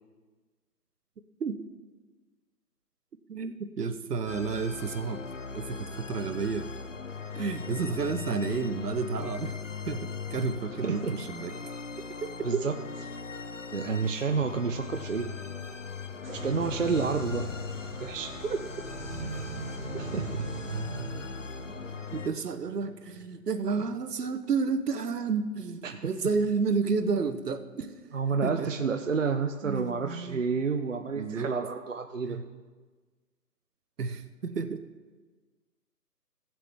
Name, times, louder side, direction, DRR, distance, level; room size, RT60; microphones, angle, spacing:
voice 1, 3.3-5.2 5.5-6.7 7.3-9.6 9.9-11.5 12.2-12.7 18.4-18.6 22.1-27.9 28.4-28.7 29.6-30.4 31.1-31.5 32.2-32.4 34.0-34.8, right 5 dB, 70° right, 9 dB, 1.0 m, -31 dB
Orchestra Loop, 4.3-22.3, left 5 dB, 55° left, 0.5 m, -39 dB
voice 2, 10.8-11.1 12.4-12.7 13.7-15.3 16.3-17.5 18.0-18.3 20.0-20.3 25.8-25.9 28.1-32.4, right 5 dB, 55° right, 5 dB, 0.5 m, -29 dB
sound 1, 16.2-23.8, right 3 dB, 5° right, 1.2 m, -39 dB
16.0 x 7.4 x 3.4 m, 1.4 s
hypercardioid pair, 175°, 48 cm